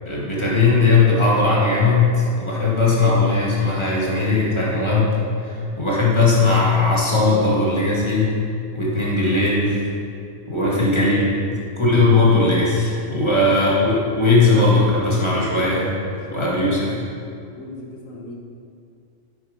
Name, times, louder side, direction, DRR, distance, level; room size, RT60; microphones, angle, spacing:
voice 1, 0.1-8.4 8.7-9.9 10.5-11.4 11.8-16.0 16.3-17.0, left 3 dB, 20° left, -6 dB, 2.4 m, -18 dB
voice 2, 13.1-13.5 16.1-16.7 17.3-18.3, left 2 dB, 70° left, -1 dB, 1.9 m, -40 dB
9.3 x 8.1 x 5.3 m, 2.5 s
omnidirectional pair, 1.4 m